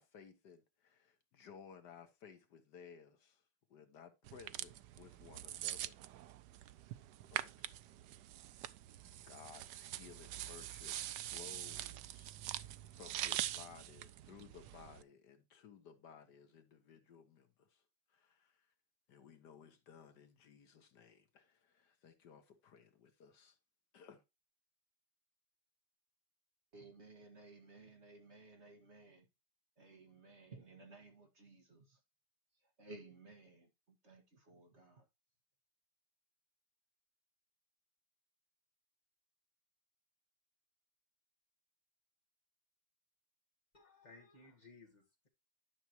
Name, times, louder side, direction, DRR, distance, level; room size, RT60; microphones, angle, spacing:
voice 1, 0.0-3.4 3.7-6.0 7.3-7.8 9.0-12.6 12.9-17.8 18.1-18.7 19.1-23.6 23.9-24.2, left 7 dB, 70° left, 1.6 m, -58 dB
sound 1, 4.3-15.0, right 13 dB, 80° right, 1.2 m, -44 dB
voice 2, 26.7-29.3 29.8-32.0 32.5-35.1, right 2 dB, 40° right, 1.7 m, -58 dB
voice 3, 43.7-45.3, left 3 dB, 25° left, 2.1 m, -60 dB
11.0 x 5.9 x 2.9 m
omnidirectional pair, 1.9 m